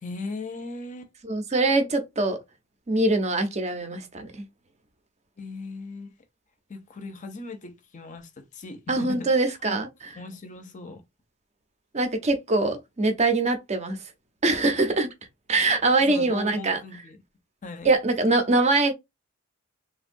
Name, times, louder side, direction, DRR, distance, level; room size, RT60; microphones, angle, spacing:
voice 1, 0.0-1.1 5.4-6.1 6.7-9.3 9.7-9.8 10.1-11.0 16.1-17.2 17.6-17.9, left 3 dB, 40° left, 0.6 m, -38 dB
voice 2, 1.2-2.4 2.9-4.4 8.9-9.9 11.9-14.0 14.4-15.1 15.5-16.8 17.8-18.9, right 2 dB, 35° right, 0.6 m, -23 dB
3.4 x 2.2 x 2.5 m
head